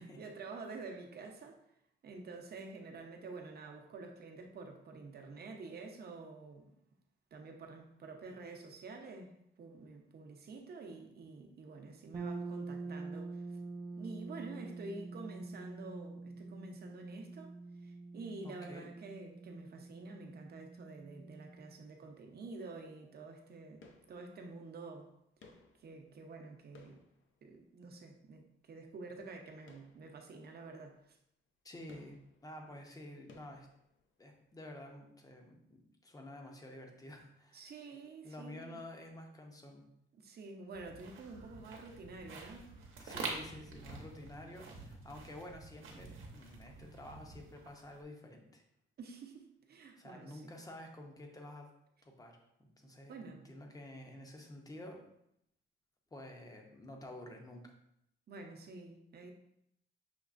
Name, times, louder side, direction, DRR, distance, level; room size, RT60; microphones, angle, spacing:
voice 1, 0.0-1.6 2.0-6.7 7.3-13.6 14.0-25.1 25.8-27.0 27.4-31.2 32.7-32.8 37.5-38.8 40.1-43.0 43.4-43.5 49.0-50.5 53.1-53.5 58.3-59.3, right 3 dB, 50° right, 3 dB, 0.7 m, -49 dB
sound 1, 12.1-21.9, right 3 dB, 20° right, 0.4 m, -46 dB
voice 2, 18.4-18.9 31.6-33.7 34.2-37.7 38.2-39.8 43.0-48.6 50.0-51.7 52.0-55.0 56.1-57.7, left 1 dB, 15° left, 2 dB, 0.6 m, -50 dB
sound 2, 23.8-24.7 25.4-28.0 29.6-30.6 31.0-31.1 31.9-34.5 34.7-34.8, left 3 dB, 75° left, 0.6 m, -62 dB
sound 3, 40.7-48.0, right 3 dB, 80° right, 0.9 m, -47 dB
6.0 x 3.1 x 2.5 m, 0.76 s
wide cardioid pair, 145°, 21 cm